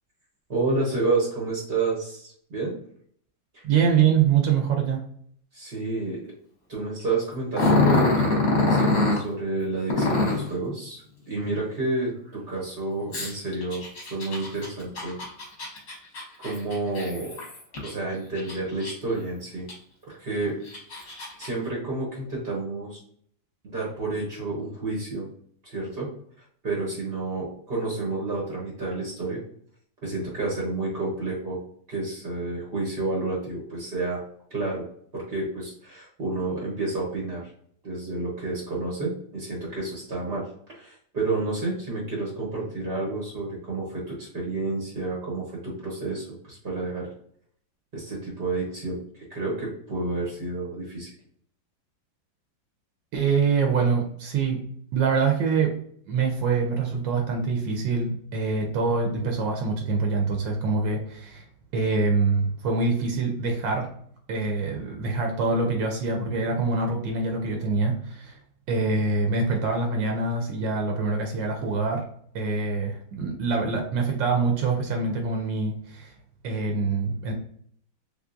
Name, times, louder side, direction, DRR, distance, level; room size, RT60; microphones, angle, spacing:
voice 1, 0.5-2.7 3.5-3.6 5.5-6.3 6.7-15.2 16.4-17.4 17.8-19.7 20.1-20.5 21.4-23.0 23.6-25.3 25.6-26.1 26.4-29.4 30.0-31.6 31.9-34.2 34.5-34.8 35.1-37.5 37.8-47.1 47.9-51.1, right 3 dB, 45° right, -3 dB, 0.8 m, -30 dB
voice 2, 3.6-5.1 53.1-54.6 54.9-55.7 56.1-61.4 61.7-63.9 64.3-68.4 68.7-72.0 72.3-76.1 76.4-77.3, right 4 dB, 75° right, 2 dB, 1.3 m, -25 dB
Growling, 7.5-9.2 9.9-10.5 13.1-17.9 18.4-19.2 19.7-19.8 20.5-21.5, left 2 dB, 40° left, 1.1 m, -24 dB
3.6 x 3.2 x 2.5 m, 0.63 s
omnidirectional pair, 2.1 m